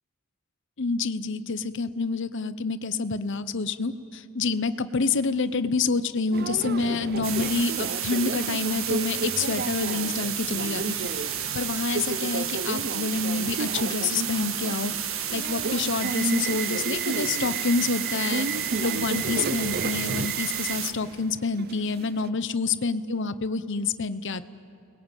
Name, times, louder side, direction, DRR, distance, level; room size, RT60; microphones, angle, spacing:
voice 1, 0.8-11.0 11.5-14.9 15.3-18.5 18.8-24.5, left 4 dB, 60° left, 13 dB, 0.9 m, -28 dB
Subway metro underground, 6.3-22.3, right 4 dB, 50° right, 0.6 m, -33 dB
sound 1, 7.2-20.9, right 9 dB, 70° right, 1.8 m, -31 dB
29.0 x 21.0 x 9.2 m, 2.8 s
head